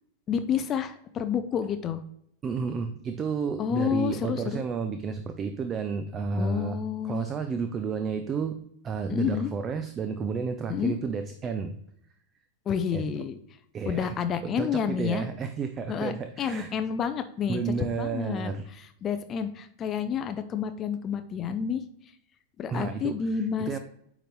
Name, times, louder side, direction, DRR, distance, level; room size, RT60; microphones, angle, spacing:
voice 1, 0.3-2.0 3.6-4.6 6.3-7.2 9.1-9.5 10.7-10.9 12.7-13.4 13.9-15.2 15.9-16.1 16.4-21.8 22.6-23.8, left 7 dB, 30° left, 9 dB, 0.4 m, -29 dB
voice 2, 2.4-8.6 8.8-11.7 12.9-13.1 13.7-14.1 14.4-16.7 17.5-18.7 22.7-23.8, right 5 dB, 25° right, 9 dB, 0.5 m, -31 dB
8.7 x 3.9 x 3.1 m, 0.71 s
figure-of-eight pair, 90°, 0 cm